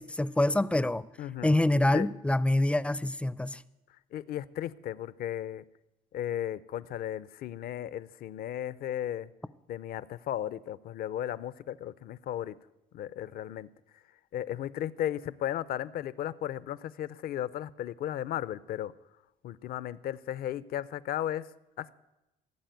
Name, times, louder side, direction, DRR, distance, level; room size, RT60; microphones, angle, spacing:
voice 1, 0.0-1.0 1.4-3.6, left 1 dB, 5° left, 18 dB, 0.4 m, -26 dB
voice 2, 1.2-1.6 1.9-2.1 4.1-5.6 6.1-9.3 9.7-12.5 12.9-13.7 14.3-18.9 19.4-21.4 21.8-21.9, left 11 dB, 65° left, 17 dB, 0.5 m, -35 dB
16.0 x 7.5 x 9.2 m, 0.96 s
cardioid pair, 110°, 17 cm